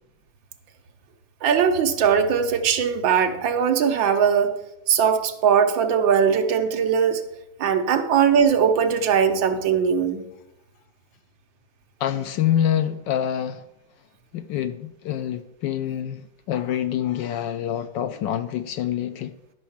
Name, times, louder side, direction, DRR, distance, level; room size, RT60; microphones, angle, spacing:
voice 1, 1.4-4.6 4.9-7.2 7.6-10.2, right 7 dB, 70° right, 1.6 m, -20 dB
voice 2, 12.0-13.6 14.3-19.3, left 10 dB, 75° left, 1.1 m, -26 dB
11.5 x 5.5 x 7.1 m
omnidirectional pair, 2.2 m